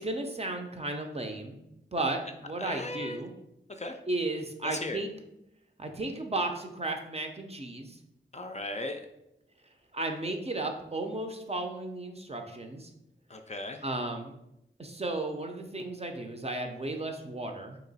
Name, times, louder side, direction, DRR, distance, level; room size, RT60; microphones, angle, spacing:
voice 1, 0.0-1.6 1.9-3.3 4.1-5.1 5.8-8.0 9.9-12.9 13.8-14.3 14.8-17.8, right 2 dB, 30° right, 4 dB, 0.5 m, -34 dB
voice 2, 2.6-3.2 3.8-4.0 4.6-5.0 8.3-9.0 13.3-13.8, left 2 dB, 35° left, 5 dB, 0.4 m, -37 dB
2.9 x 2.9 x 4.0 m, 0.83 s
wide cardioid pair, 50°, 20 cm